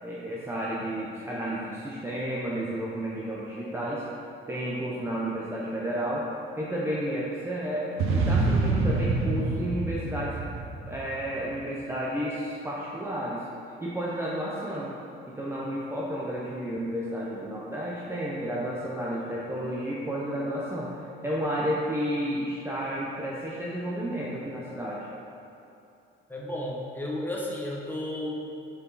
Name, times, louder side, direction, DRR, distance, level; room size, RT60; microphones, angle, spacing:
voice 1, 0.0-4.0 4.5-6.2 6.6-10.4 10.9-13.4 13.8-14.9 15.3-25.1, equal, 10° right, -6 dB, 0.6 m, -32 dB
sound 1, 8.0-11.5, right 3 dB, 80° right, 0.7 m, -26 dB
voice 2, 26.3-28.3, left 1 dB, 10° left, -4 dB, 1.0 m, -33 dB
6.9 x 4.7 x 4.0 m, 2.7 s
cardioid pair, 145°, 21 cm